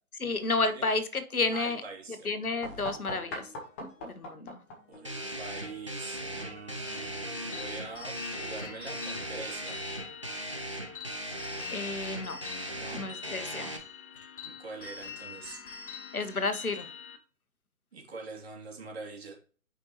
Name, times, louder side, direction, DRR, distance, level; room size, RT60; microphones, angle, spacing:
voice 1, 0.2-1.8 2.2-3.5 3.8-4.6 11.7-12.4 12.9-13.7 16.1-16.9, left 3 dB, 80° left, 9 dB, 1.3 m, -31 dB
voice 2, 1.5-2.3 4.3-4.5 4.9-9.8 12.7-13.0 14.1-14.2 14.4-15.6 17.9-19.3, right 3 dB, 45° right, -1 dB, 2.8 m, -44 dB
sound 1, 2.6-8.2, left 1 dB, 10° left, 0.7 m, -45 dB
sound 2, 5.0-13.8, right 1 dB, 25° right, 0.4 m, -38 dB
sound 3, 6.9-17.2, left 6 dB, 40° left, 1.0 m, -45 dB
7.0 x 5.3 x 3.1 m, 0.39 s
figure-of-eight pair, 140°, 42 cm